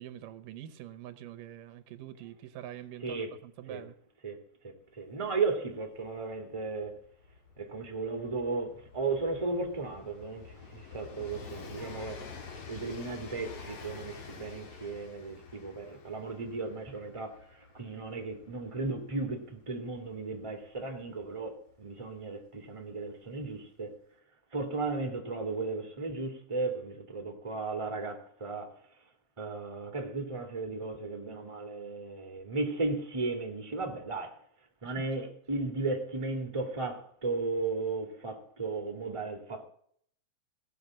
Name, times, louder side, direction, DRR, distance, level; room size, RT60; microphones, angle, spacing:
voice 1, 0.0-4.0 34.8-35.3, right 12 dB, 85° right, 2.6 m, -45 dB
voice 2, 3.0-3.3 3.7-3.8 4.2-4.4 4.6-6.9 7.6-12.2 12.7-17.4 17.7-23.9 24.5-28.7 29.4-34.3 34.8-39.6, right 3 dB, 15° right, 1.4 m, -35 dB
Train, 5.1-5.2 5.4-22.0 23.0-23.1, left 5 dB, 55° left, 2.6 m, -49 dB
17.0 x 6.0 x 7.4 m
omnidirectional pair, 3.8 m